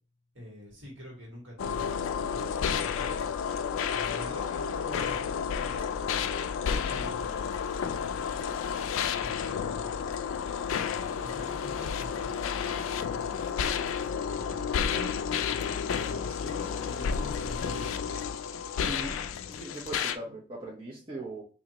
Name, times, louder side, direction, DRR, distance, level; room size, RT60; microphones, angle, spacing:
voice 1, 0.3-3.3 3.9-6.3 6.7-7.6 8.8-9.9 11.2-13.4 14.1-18.0 19.4-19.6, left 1 dB, 65° right, -2 dB, 1.7 m, -46 dB
sound 1, 1.6-20.2, left 7 dB, 75° left, 0.3 m, -31 dB
voice 2, 18.8-19.2 19.5-21.4, right 1 dB, 25° right, -5 dB, 0.8 m, -39 dB
3.8 x 2.8 x 2.9 m, 0.36 s
head